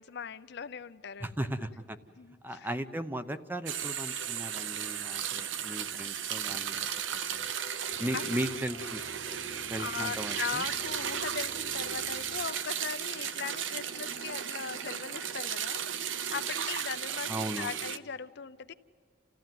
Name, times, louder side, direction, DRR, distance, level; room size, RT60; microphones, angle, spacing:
voice 1, 0.0-1.4 2.2-2.7 8.1-8.5 9.5-18.7, left 6 dB, 65° left, 12 dB, 0.6 m, -39 dB
voice 2, 1.2-2.0 2.4-6.9 7.3-7.5 8.0-9.0 9.7-10.6 17.3-17.8, right 1 dB, 10° right, 10 dB, 0.8 m, -36 dB
sound 1, 3.7-18.0, right 8 dB, 90° right, 0.6 m, -35 dB
sound 2, 7.9-12.6, left 2 dB, 45° left, 1.0 m, -52 dB
30.0 x 15.0 x 9.2 m, 2.4 s
head